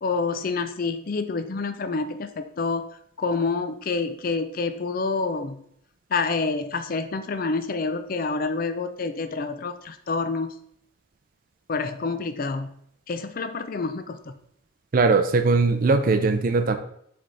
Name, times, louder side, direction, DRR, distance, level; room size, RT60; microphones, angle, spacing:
voice 1, 0.0-2.8 3.2-5.6 6.1-10.5 11.7-12.7 13.1-14.2, left 4 dB, 45° left, 9 dB, 0.4 m, -27 dB
voice 2, 14.9-16.7, right 3 dB, 40° right, 8 dB, 0.4 m, -20 dB
7.4 x 3.4 x 4.0 m, 0.69 s
head